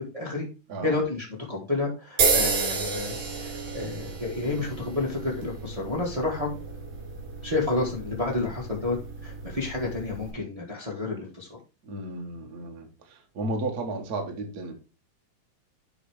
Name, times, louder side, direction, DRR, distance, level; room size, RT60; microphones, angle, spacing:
voice 1, 0.1-0.4 0.8-6.5 7.4-9.0 9.2-11.6, left 3 dB, 50° right, -3 dB, 0.4 m, -30 dB
sound 1, 2.2-10.3, right 4 dB, 85° right, 4.3 m, -31 dB
voice 2, 11.8-14.7, right 2 dB, 65° right, 3 dB, 0.9 m, -33 dB
9.8 x 3.3 x 4.8 m, 0.32 s
omnidirectional pair, 4.0 m